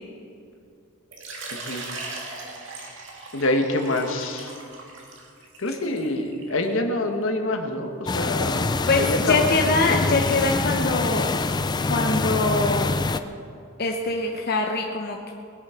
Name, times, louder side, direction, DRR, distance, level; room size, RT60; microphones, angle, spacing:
Water / Liquid, 1.1-6.6, right 3 dB, 60° right, 2.4 m, -39 dB
voice 1, 1.5-1.8 3.3-4.5 5.6-8.7 9.0-9.5 9.9-10.2, left 2 dB, 70° left, 4 dB, 1.6 m, -26 dB
sound 1, 8.1-13.2, left 3 dB, 20° left, 0.4 m, -25 dB
voice 2, 8.9-11.3 11.9-12.9 13.8-15.3, left 3 dB, 50° left, 1 dB, 0.9 m, -23 dB
20.0 x 8.6 x 5.9 m, 2.5 s
head